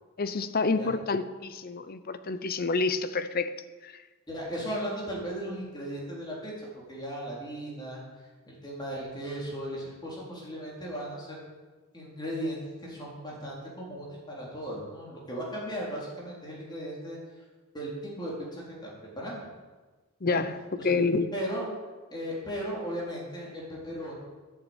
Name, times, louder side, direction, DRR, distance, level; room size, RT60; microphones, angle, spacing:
voice 1, 0.2-3.5 3.8-3.9 20.2-20.6 20.8-21.3, left 4 dB, 40° left, 13 dB, 0.7 m, -28 dB
voice 2, 4.3-8.0 8.5-11.4 11.9-17.2 17.7-18.9 19.1-19.3 20.3-20.4 20.8-20.9 21.3-21.7 22.1-24.1, equal, 20° left, -4 dB, 3.9 m, -36 dB
11.0 x 7.1 x 9.0 m, 1.3 s
head